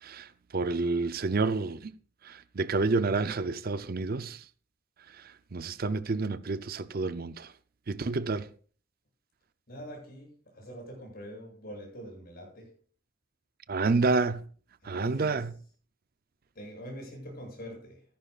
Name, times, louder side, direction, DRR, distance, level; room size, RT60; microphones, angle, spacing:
voice 1, 0.0-1.9 2.2-4.4 5.1-7.5 7.9-8.5 13.7-14.5 14.8-15.5, right 3 dB, 45° right, 0.5 m, -29 dB
voice 2, 9.7-12.7 14.8-15.4 16.5-18.0, equal, 50° left, 7.9 m, -44 dB
16.5 x 14.0 x 2.4 m
head